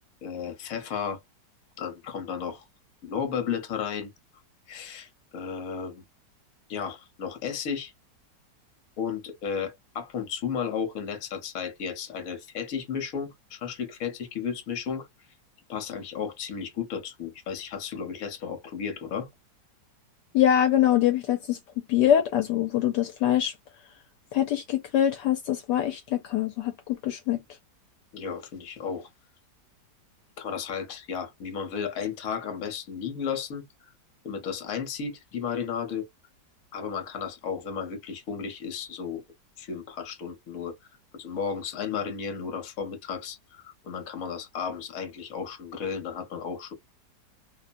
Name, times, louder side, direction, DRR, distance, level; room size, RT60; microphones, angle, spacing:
voice 1, 0.2-1.2 1.8-2.6 3.0-4.1 4.7-6.0 6.7-7.9 9.0-15.1 15.7-19.3 28.1-29.1 30.4-33.6 34.2-36.1 36.7-39.2 39.6-40.8 41.1-46.7, left 7 dB, 55° left, 1.2 m, -33 dB
voice 2, 20.3-21.6 21.9-23.5 24.3-27.4, left 11 dB, 75° left, 1.1 m, -24 dB
3.0 x 2.1 x 2.4 m
omnidirectional pair, 1.9 m